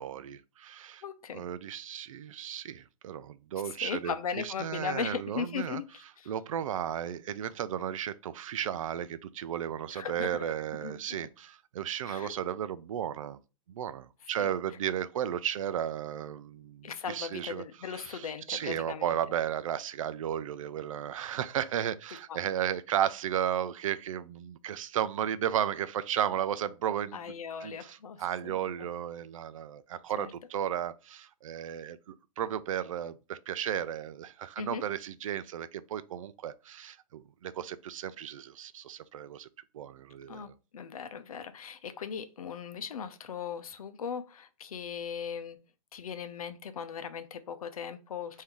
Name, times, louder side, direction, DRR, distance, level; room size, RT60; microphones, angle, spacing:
voice 1, 0.0-1.0 1.3-4.1 4.4-5.8 6.3-13.4 13.7-17.6 17.9-27.2 27.6-39.5 39.7-40.5, right 10 dB, 65° right, 0.4 m, -34 dB
voice 2, 1.0-1.4 3.8-6.3 9.9-11.2 12.0-12.3 14.4-14.5 16.8-19.1 22.3-22.4 27.1-28.6 30.2-30.3 34.6-34.8 40.3-45.6 45.9-48.4, left 7 dB, 90° left, 0.7 m, -38 dB
3.6 x 2.7 x 4.5 m
hypercardioid pair, 160°, 18 cm